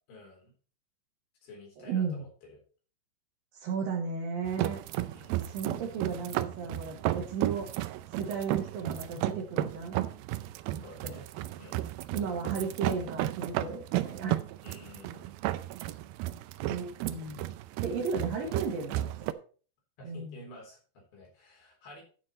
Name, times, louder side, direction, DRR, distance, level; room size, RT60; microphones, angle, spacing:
voice 1, 0.1-0.5 1.4-2.6 5.1-5.6 10.8-11.3 11.6-11.9 14.6-15.4 20.0-22.0, left 2 dB, 60° left, -1 dB, 5.6 m, -51 dB
voice 2, 1.8-2.2 3.5-4.8 5.5-7.7 8.2-10.0 11.0-11.1 12.1-14.4 16.6-17.4 17.8-19.1 20.0-20.4, right 5 dB, 60° right, 2 dB, 3.0 m, -34 dB
sound 1, 4.5-19.3, right 15 dB, 90° right, 2.1 m, -34 dB
11.5 x 6.5 x 4.2 m, 0.40 s
omnidirectional pair, 5.0 m